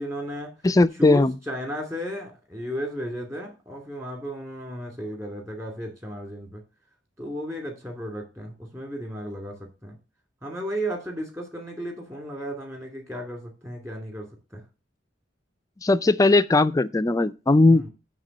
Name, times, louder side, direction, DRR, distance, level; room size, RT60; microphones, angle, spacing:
voice 1, 0.0-0.5 1.0-6.6 7.2-10.0 10.4-14.6 17.7-17.9, equal, 15° right, 2.5 m, -34 dB
voice 2, 0.6-1.3 15.8-17.9, left 2 dB, 20° left, 0.4 m, -18 dB
9.0 x 3.7 x 6.4 m
head